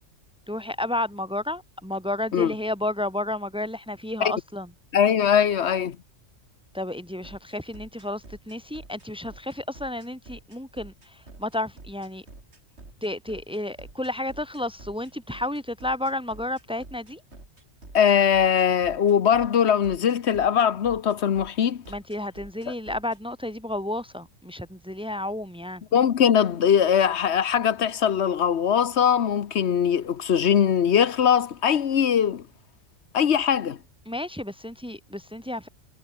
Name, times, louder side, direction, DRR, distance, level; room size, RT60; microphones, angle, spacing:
voice 1, 0.5-4.7 6.7-12.3 13.0-17.2 21.9-25.8 34.1-35.7, left 1 dB, 5° right, 1.9 m, -31 dB
voice 2, 4.9-6.0 17.9-21.8 25.9-32.4 33.1-33.8, left 8 dB, 65° left, 1.2 m, -21 dB
sound 1, 7.2-23.2, right 2 dB, 60° right, 4.2 m, -47 dB
omnidirectional pair, 1.3 m